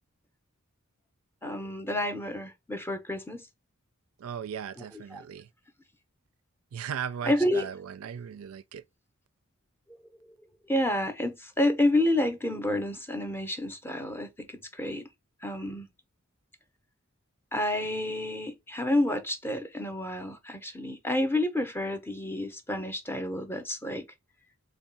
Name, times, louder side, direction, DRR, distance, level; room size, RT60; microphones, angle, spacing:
voice 1, 1.4-3.5 4.8-5.2 7.2-7.7 10.7-15.1 15.4-15.9 17.5-24.1, left 1 dB, 10° left, 0.5 m, -29 dB
voice 2, 4.2-5.5 6.7-8.8, right 8 dB, 85° right, 0.4 m, -37 dB
3.5 x 2.2 x 4.0 m
head